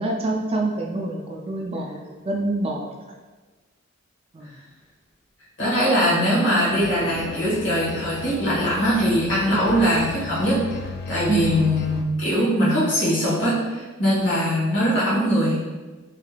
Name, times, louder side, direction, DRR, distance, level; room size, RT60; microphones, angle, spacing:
voice 1, 0.0-2.9 4.3-4.5 9.5-9.7 11.3-11.6 14.2-14.3, right 2 dB, 30° right, 0 dB, 0.4 m, -26 dB
voice 2, 5.6-10.6 11.1-15.6, equal, 65° left, -7 dB, 1.5 m, -21 dB
sound 1, 6.7-12.0, left 3 dB, 50° left, 0.3 m, -35 dB
3.4 x 3.2 x 2.4 m, 1.3 s
head